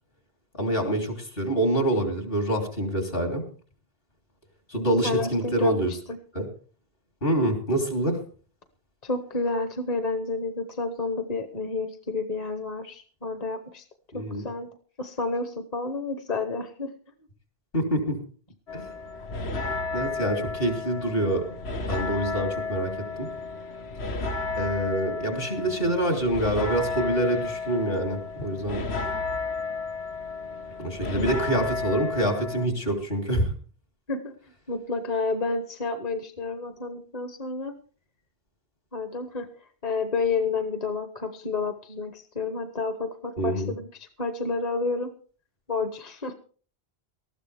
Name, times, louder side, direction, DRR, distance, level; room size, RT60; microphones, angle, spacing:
voice 1, 0.6-3.4 4.7-5.9 6.3-6.5 7.2-8.2 14.1-14.5 17.7-18.2 18.7-18.8 19.9-21.4 21.9-22.9 23.2-23.3 24.6-28.8 30.8-33.5 43.4-43.7, right 1 dB, 65° left, 3 dB, 3.6 m, -26 dB
voice 2, 5.0-6.2 9.0-13.8 14.4-14.7 15.0-16.9 31.2-31.3 34.1-34.3 34.7-37.7 38.9-39.5 39.8-45.1 45.7-46.3, left 4 dB, 40° left, 7 dB, 1.1 m, -30 dB
sound 1, 18.7-32.7, left 4 dB, 85° left, 1.6 m, -32 dB
19.5 x 13.5 x 3.4 m, 0.41 s
omnidirectional pair, 1.1 m